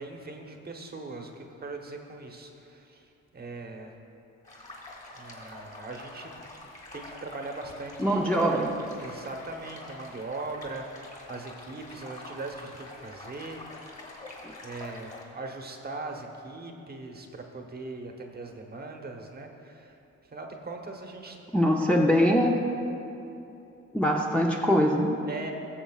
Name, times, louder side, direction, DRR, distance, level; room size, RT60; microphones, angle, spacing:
voice 1, 0.0-4.0 5.1-6.3 6.9-8.6 9.0-14.0 14.6-20.0 20.3-21.4 25.3-25.5, right 3 dB, 30° right, 2 dB, 1.0 m, -40 dB
sound 1, 4.4-15.2, left 2 dB, 25° left, 2.3 m, -46 dB
voice 2, 8.0-8.7 14.4-14.5 21.5-22.5 23.9-25.2, equal, 5° left, -2 dB, 0.6 m, -23 dB
19.0 x 7.1 x 2.4 m, 2.9 s
cardioid pair, 90°, 30 cm